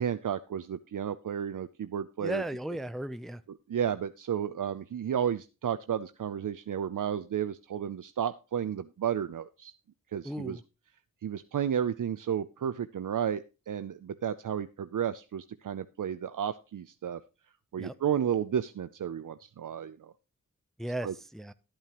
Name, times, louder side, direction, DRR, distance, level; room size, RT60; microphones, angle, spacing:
voice 1, 0.0-2.4 3.7-9.7 10.1-10.6 11.2-17.2 17.7-20.1 21.0-21.1, right 9 dB, 70° right, 11 dB, 0.5 m, -32 dB
voice 2, 2.2-3.4 10.2-10.6 17.8-17.9 20.8-21.5, right 1 dB, ahead, 12 dB, 0.5 m, -36 dB
13.0 x 8.7 x 3.0 m, 0.29 s
wide cardioid pair, 65°, 33 cm